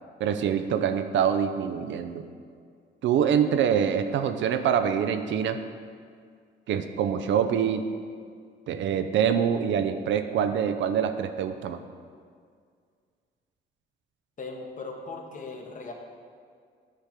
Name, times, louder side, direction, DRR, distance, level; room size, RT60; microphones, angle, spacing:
voice 1, 0.2-2.2 3.0-5.6 6.7-7.8 8.7-11.8, right 8 dB, 70° right, 9 dB, 0.5 m, -25 dB
voice 2, 14.4-15.9, left 3 dB, 40° left, 2 dB, 1.1 m, -38 dB
9.9 x 3.4 x 5.7 m, 2.1 s
cardioid pair, 90°, 20 cm